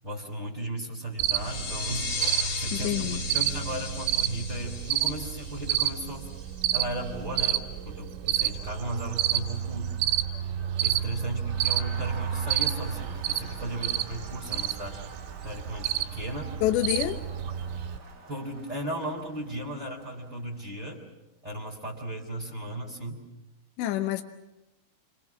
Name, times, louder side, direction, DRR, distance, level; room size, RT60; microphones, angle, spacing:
voice 1, 0.0-2.1 2.6-6.3 6.7-9.9 10.8-15.0 15.4-16.5 18.3-21.0 21.4-23.2, right 1 dB, 10° right, -5 dB, 3.4 m, -36 dB
Cricket, 1.2-18.0, right 11 dB, 85° right, 3.7 m, -30 dB
sound 1, 1.3-6.7, left 4 dB, 40° left, 1.7 m, -36 dB
voice 2, 2.7-3.2 16.6-17.2 23.8-24.2, left 13 dB, 75° left, 5 dB, 3.0 m, -27 dB
Crowd, 8.3-20.9, right 4 dB, 50° right, 1.6 m, -48 dB
29.5 x 25.5 x 6.2 m, 0.96 s
omnidirectional pair, 5.7 m